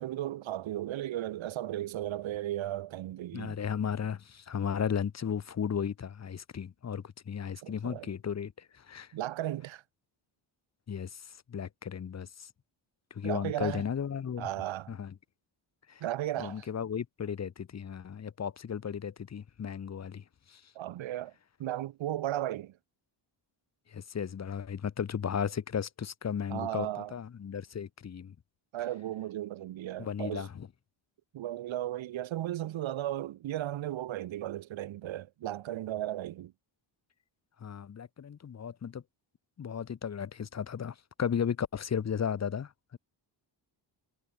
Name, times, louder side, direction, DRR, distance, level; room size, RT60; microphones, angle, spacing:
voice 1, 0.0-3.6 7.6-8.1 9.1-9.8 13.2-13.8 14.4-15.0 16.0-16.7 20.7-21.3 21.6-22.8 26.5-27.1 28.7-30.5 31.3-36.5, right 13 dB, 85° right, 1.1 m, -35 dB
voice 2, 3.3-9.1 10.9-12.5 13.1-14.5 14.9-15.1 15.9-16.0 16.4-20.7 23.9-28.3 30.0-30.7 37.6-39.0 39.6-43.0, left 7 dB, 35° left, 1.0 m, -35 dB
wide cardioid pair, 150°, 45 cm